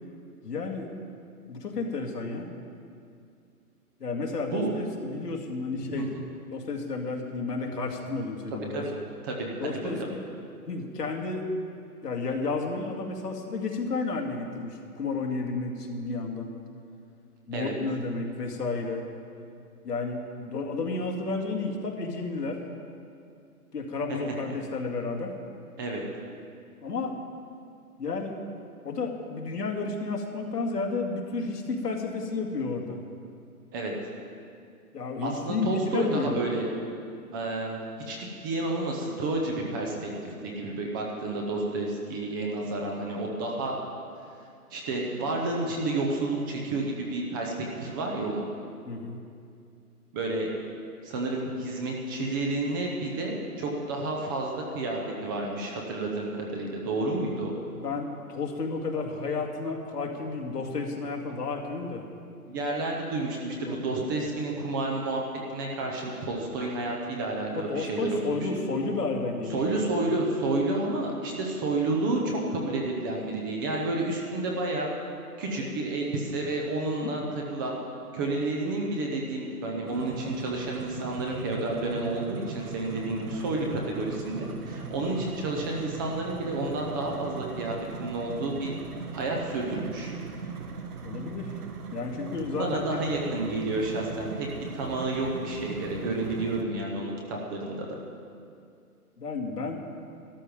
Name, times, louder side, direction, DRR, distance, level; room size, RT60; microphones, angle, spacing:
voice 1, 0.4-0.9 1.5-2.5 4.0-6.1 6.5-8.9 9.6-10.2 10.7-11.5 12.0-16.5 17.5-19.0 19.8-22.6 23.7-25.3 26.8-27.2 28.0-28.4 28.8-33.0 34.9-36.4 48.9-49.2 57.8-62.0 63.1-63.2 63.7-63.8 67.5-69.8 75.6-75.7 77.0-77.2 91.0-91.5 91.9-93.5 99.2-99.9, left 3 dB, 90° left, 1 dB, 2.2 m, -32 dB
voice 2, 9.2-10.1 17.5-17.7 24.1-24.2 25.8-26.0 33.7-33.9 35.2-36.7 37.3-37.8 38.1-43.8 44.7-48.5 50.1-50.5 51.0-57.5 62.5-65.2 65.5-68.6 69.5-74.9 75.4-77.8 78.1-88.8 89.1-90.1 92.6-94.5 94.7-98.0, right 2 dB, 15° right, 0 dB, 0.7 m, -30 dB
sound 1, 79.9-96.6, right 5 dB, 70° right, 1.4 m, -39 dB
13.0 x 12.0 x 5.1 m, 2.4 s
hypercardioid pair, 145°, 46 cm